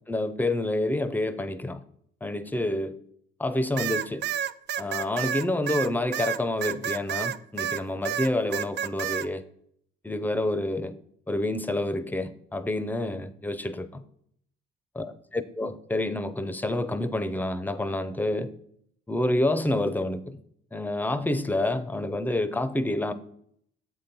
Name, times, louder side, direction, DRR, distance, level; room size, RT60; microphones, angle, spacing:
voice 1, 0.1-1.8 2.2-3.0 3.4-4.3 4.8-9.4 10.0-10.9 11.3-14.0 15.0-18.5 19.1-20.4 20.7-23.1, left 1 dB, 10° left, 13 dB, 0.6 m, -28 dB
sound 1, 3.8-7.8 8.1-9.3, right 9 dB, 60° right, 0.4 m, -30 dB
7.5 x 4.4 x 5.3 m, 0.68 s
cardioid pair, 90°, 20 cm